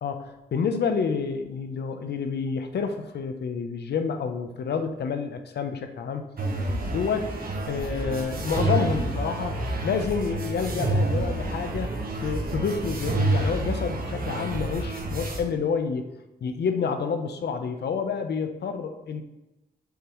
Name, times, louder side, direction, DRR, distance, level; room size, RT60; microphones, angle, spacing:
voice 1, 0.0-6.2 6.9-7.4 7.7-11.9 12.2-16.1 16.4-19.2, left 5 dB, 85° left, 7 dB, 0.7 m, -29 dB
sound 1, 6.4-15.4, right 2 dB, 60° right, 1.4 m, -28 dB
7.3 x 7.2 x 3.1 m, 1.0 s
cardioid pair, 85°, 17 cm